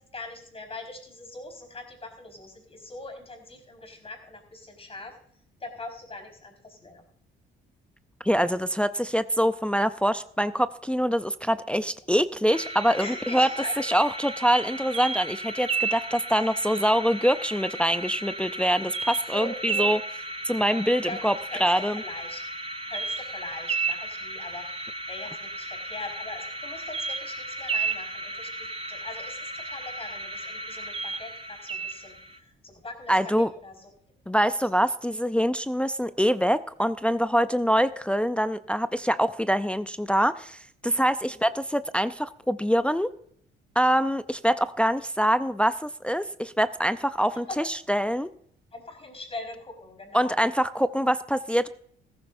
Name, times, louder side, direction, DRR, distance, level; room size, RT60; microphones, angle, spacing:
voice 1, 0.1-5.1 5.6-7.0 13.0-13.7 16.3-16.5 19.3-19.9 21.0-22.4 22.8-24.6 25.1-33.3 33.6-33.9 41.4-41.5 47.5-47.6 48.7-50.4, left 2 dB, 30° left, 4 dB, 4.7 m, -41 dB
voice 2, 8.2-13.5 13.8-20.0 20.4-21.3 21.6-22.0 33.1-33.5 34.3-43.1 43.8-48.3 50.1-51.7, equal, 5° left, 12 dB, 0.5 m, -24 dB
sound 1, 12.5-32.4, right 3 dB, 30° right, 1.1 m, -34 dB
15.0 x 14.0 x 2.6 m, 0.64 s
cardioid pair, 90°, 20 cm